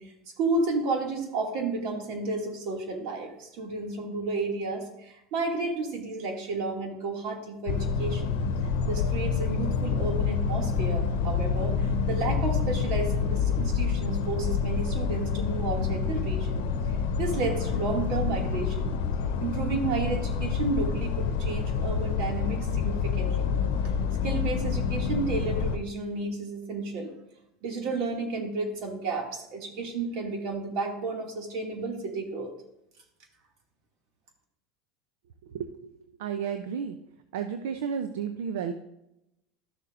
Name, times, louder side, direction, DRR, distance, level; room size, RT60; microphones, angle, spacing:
voice 1, 0.0-8.4 8.9-16.7 17.2-19.0 19.4-23.5 24.2-27.1 27.6-32.5, right 3 dB, 65° right, 1 dB, 2.4 m, -32 dB
sound 1, 7.7-25.8, left 5 dB, 80° left, 0.8 m, -27 dB
voice 2, 35.4-35.9 36.2-37.0 37.3-38.7, right 7 dB, 80° right, 8 dB, 0.6 m, -32 dB
12.5 x 6.7 x 2.6 m, 0.84 s
hypercardioid pair, 95°, 0 cm